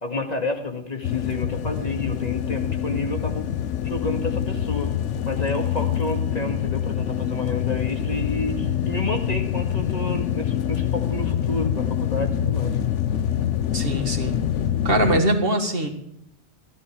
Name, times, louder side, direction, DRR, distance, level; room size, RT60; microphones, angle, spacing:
voice 1, 0.0-3.4 3.8-5.0 5.2-12.8, left 2 dB, 35° left, 3 dB, 2.2 m, -30 dB
sound 1, 1.0-15.2, left 9 dB, 90° left, 1.0 m, -25 dB
voice 2, 13.7-14.3 14.8-15.9, right 1 dB, 55° right, 4 dB, 2.0 m, -22 dB
16.0 x 12.0 x 4.9 m, 0.78 s
omnidirectional pair, 1.2 m